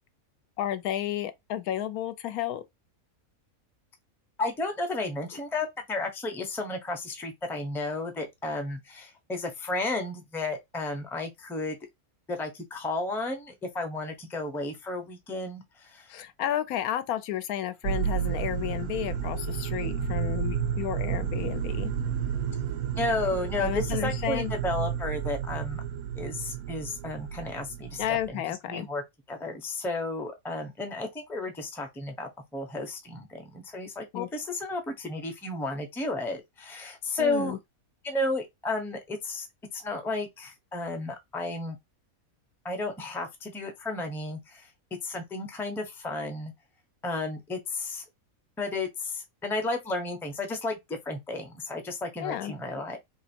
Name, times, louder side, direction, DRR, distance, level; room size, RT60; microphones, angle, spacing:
voice 1, 0.6-2.6 16.1-21.9 23.6-24.5 28.0-28.9 34.1-34.3 37.2-37.6 52.2-52.5, left 11 dB, 90° left, 1.1 m, -32 dB
voice 2, 4.4-11.8 12.3-16.2 22.9-25.8 26.2-29.0 29.3-37.6 38.0-39.5 39.7-41.8 42.6-44.7 45.0-46.5 47.0-48.0 48.6-53.0, left 2 dB, 5° left, 0.5 m, -33 dB
sound 1, 17.8-28.3, right 8 dB, 90° right, 1.1 m, -31 dB
2.9 x 2.7 x 4.3 m
omnidirectional pair, 1.5 m